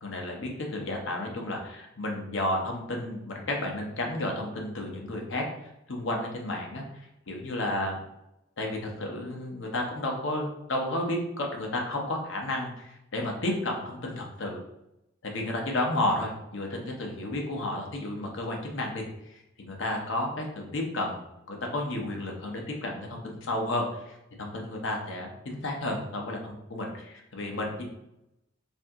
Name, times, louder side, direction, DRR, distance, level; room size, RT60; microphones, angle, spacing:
voice 1, 0.0-5.4 5.9-8.0 8.6-14.6 15.2-21.2 21.5-27.8, left 1 dB, 65° left, 1 dB, 0.7 m, -32 dB
2.7 x 2.6 x 3.4 m, 0.86 s
head